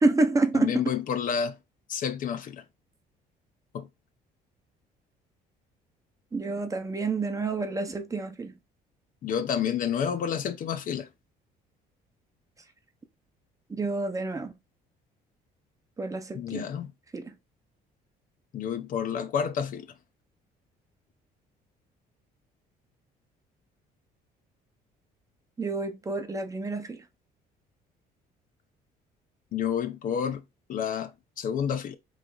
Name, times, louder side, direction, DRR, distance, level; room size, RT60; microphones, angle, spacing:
voice 1, 0.0-0.9 6.3-8.6 13.7-14.6 16.0-16.7 17.1-17.3 25.6-27.0, right 3 dB, 20° right, 0.7 m, -28 dB
voice 2, 0.6-1.5 1.9-2.6 3.7-3.9 9.2-11.1 16.3-16.9 18.5-19.9 29.5-30.4 30.7-31.1 31.4-32.0, left 8 dB, 55° left, 0.6 m, -29 dB
3.4 x 3.2 x 3.8 m
cardioid pair, 110°, 17 cm